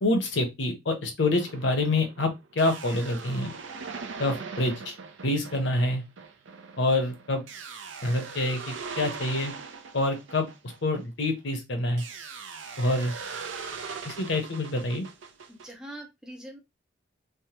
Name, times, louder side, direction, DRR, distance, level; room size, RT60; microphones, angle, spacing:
voice 1, 0.0-3.5 4.2-4.9 5.2-6.0 6.8-7.4 8.0-9.5 9.9-10.5 10.8-12.0 12.8-13.1 14.0-15.1, left 2 dB, 65° left, 5 dB, 0.8 m, -26 dB
sound 1, 1.3-11.4 12.0-15.7, right 5 dB, 70° right, 0.5 m, -41 dB
voice 2, 15.5-16.6, right 1 dB, 5° right, 2 dB, 0.5 m, -43 dB
3.4 x 2.1 x 2.8 m, 0.21 s
head